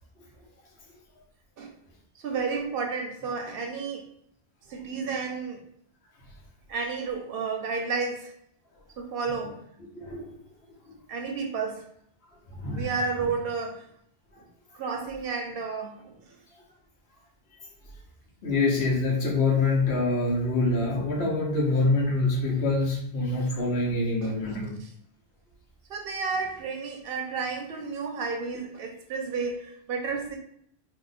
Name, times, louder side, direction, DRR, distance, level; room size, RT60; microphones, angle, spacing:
voice 1, 2.2-4.0 4.7-5.6 6.7-8.3 9.0-9.6 11.1-11.8 12.7-13.9 14.7-16.4 24.2-24.4 24.8-24.9 25.9-30.4, right 4 dB, 70° right, 3 dB, 0.8 m, -31 dB
voice 2, 10.0-10.3 12.6-12.9 18.4-24.8, left 2 dB, 85° left, -2 dB, 1.1 m, -25 dB
2.8 x 2.2 x 4.0 m, 0.70 s
omnidirectional pair, 1.0 m